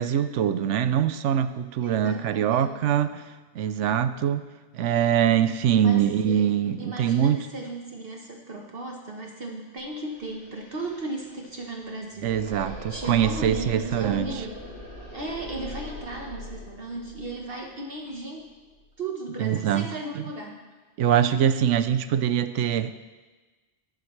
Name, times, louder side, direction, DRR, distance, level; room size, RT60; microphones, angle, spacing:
voice 1, 0.0-4.5 4.7-7.5 12.2-14.3 19.4-19.9 20.1-20.2 21.0-22.9, right 9 dB, 85° right, 12 dB, 0.9 m, -23 dB
voice 2, 1.8-2.8 5.8-14.6 15.1-18.5 19.0-20.6, right 2 dB, 55° right, 0 dB, 1.3 m, -36 dB
sound 1, 9.8-9.9 10.1-18.9, left 1 dB, 60° left, 3.2 m, -41 dB
19.0 x 7.7 x 3.2 m, 1.3 s
omnidirectional pair, 1.2 m